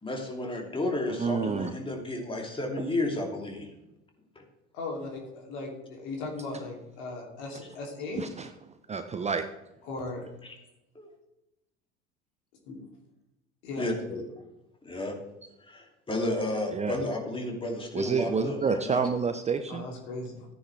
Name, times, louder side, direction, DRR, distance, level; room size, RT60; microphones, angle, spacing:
voice 1, 0.0-3.7 4.3-4.4 10.4-10.5 10.9-11.1 13.8-14.2 14.8-15.1 15.6-19.0, left 2 dB, 15° left, 1 dB, 2.9 m, -32 dB
voice 2, 1.2-1.7 2.8-2.9 8.2-8.5 8.9-9.4 16.7-17.0 17.9-19.8, right 5 dB, 20° right, 9 dB, 0.7 m, -28 dB
voice 3, 4.7-8.2 9.9-10.3 12.7-12.8 13.6-13.9 19.7-20.5, left 2 dB, 60° left, 1 dB, 3.1 m, -37 dB
15.0 x 9.6 x 3.4 m, 0.92 s
figure-of-eight pair, 65°, 33 cm